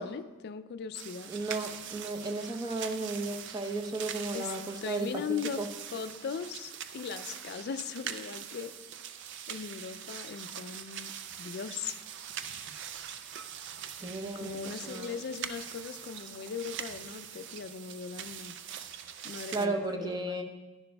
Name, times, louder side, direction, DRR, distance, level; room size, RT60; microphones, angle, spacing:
voice 1, 0.0-1.3 4.3-4.5 4.8-5.6 5.9-8.7 9.5-12.0 14.3-18.6 19.2-20.4, left 6 dB, 50° left, 12 dB, 0.3 m, -39 dB
sound 1, 0.9-19.7, right 9 dB, 55° right, 0.4 m, -43 dB
voice 2, 1.3-5.2 5.6-5.7 14.0-15.1 19.5-20.4, right 2 dB, 20° right, 3 dB, 0.7 m, -34 dB
10.5 x 10.5 x 2.2 m, 1.2 s
head